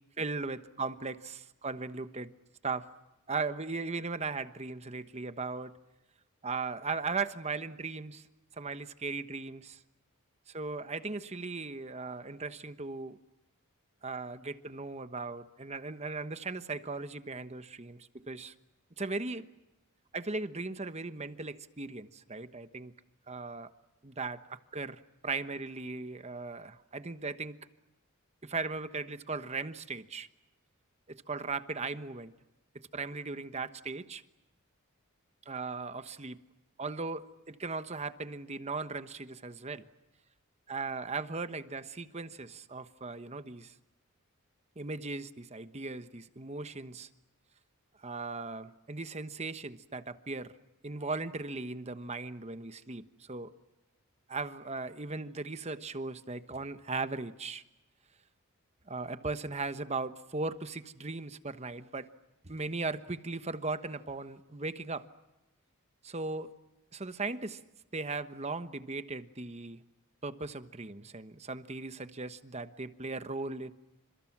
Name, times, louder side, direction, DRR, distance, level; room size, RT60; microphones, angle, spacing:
voice 1, 0.2-2.3 2.6-2.9 3.3-5.7 6.4-8.3 8.5-9.8 10.5-13.2 14.0-18.5 19.0-19.5 20.1-22.9 23.3-23.7 24.0-27.6 28.4-30.3 31.1-32.3 32.9-34.2 35.4-36.4 36.8-39.9 40.7-43.7 44.8-47.1 48.0-50.5 50.8-53.5 54.3-57.6 58.9-62.1 62.4-65.0 66.0-66.5 66.9-67.6 67.9-69.8 70.2-73.7, right 3 dB, 30° right, 11 dB, 1.1 m, -38 dB
30.0 x 27.0 x 6.1 m, 0.98 s
head